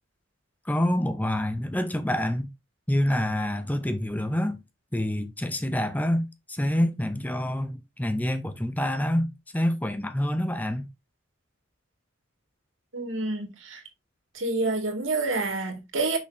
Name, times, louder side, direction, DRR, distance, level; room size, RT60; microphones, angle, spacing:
voice 1, 0.7-2.5 2.9-4.6 4.9-10.9, left 1 dB, 10° left, 0.7 m, -27 dB
voice 2, 12.9-13.8 14.3-16.2, right 3 dB, 70° right, 2.3 m, -28 dB
6.1 x 6.1 x 2.8 m
head